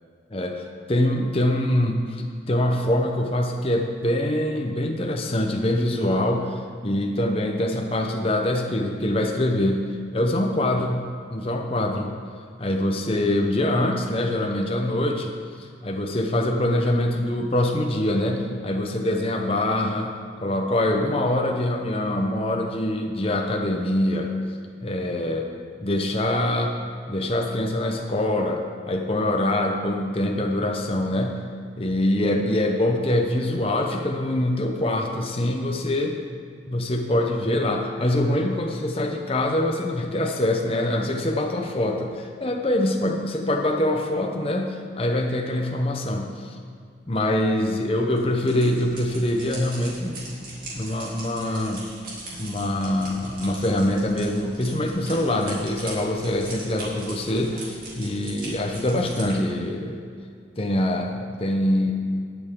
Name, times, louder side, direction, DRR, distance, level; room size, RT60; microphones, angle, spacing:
voice 1, 0.3-9.9 10.1-11.0 11.3-12.1 12.6-15.3 15.6-20.1 20.4-24.3 24.8-25.5 25.8-26.7 27.1-31.4 31.8-36.2 36.7-46.5 47.1-50.2 50.7-51.9 52.4-60.0 60.6-61.9, left 1 dB, 30° left, 2 dB, 0.7 m, -24 dB
sound 1, 48.1-59.3, right 2 dB, 50° right, 2.9 m, -40 dB
19.0 x 6.8 x 3.7 m, 2.2 s
head